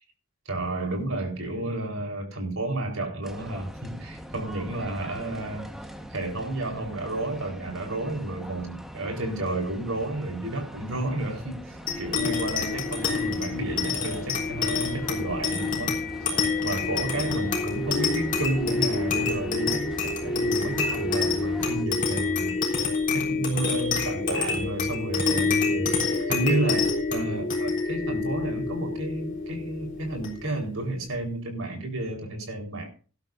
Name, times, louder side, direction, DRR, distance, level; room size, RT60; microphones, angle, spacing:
voice 1, 0.4-5.7 6.1-16.3 16.6-22.6 23.1-32.9, right 1 dB, 75° right, 4.3 m, -31 dB
sound 1, 3.2-21.9, equal, ahead, 1.3 m, -42 dB
sound 2, 11.9-30.7, left 4 dB, 40° left, 3.7 m, -27 dB
18.5 x 12.0 x 2.7 m
head